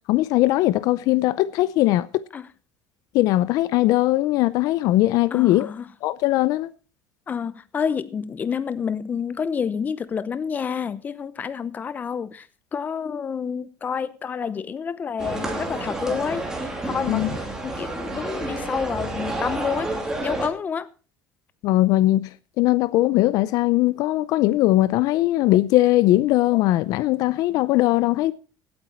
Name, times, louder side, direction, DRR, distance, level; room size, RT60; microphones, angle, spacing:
voice 1, 0.1-2.1 3.1-5.7 6.0-6.7 17.1-17.3 21.6-22.3 22.6-28.3, left 16 dB, 60° left, 0.5 m, -20 dB
voice 2, 5.3-5.9 7.3-12.5 12.7-16.5 16.8-17.3 17.6-20.0 20.2-20.9, left 6 dB, 25° left, 0.8 m, -28 dB
sound 1, 15.2-20.5, right 2 dB, 10° right, 2.7 m, -30 dB
16.5 x 8.8 x 4.4 m
cardioid pair, 145°, 7 cm